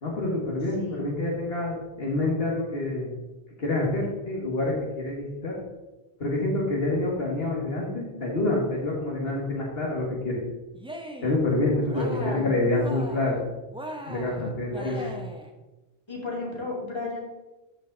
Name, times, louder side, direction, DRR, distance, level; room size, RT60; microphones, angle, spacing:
voice 1, 0.0-3.1 3.6-5.6 6.2-10.4 11.2-13.4 14.1-15.1, left 2 dB, 70° left, -3 dB, 1.8 m, -27 dB
voice 2, 0.8-1.1 11.9-12.6 14.7-15.2 16.1-17.2, left 2 dB, 25° left, -4 dB, 2.5 m, -34 dB
Cheering, 10.7-11.4 11.8-12.5 12.7-13.4 13.7-15.5, right 1 dB, 5° right, 0.8 m, -39 dB
13.0 x 5.0 x 3.9 m, 1.1 s
omnidirectional pair, 1.1 m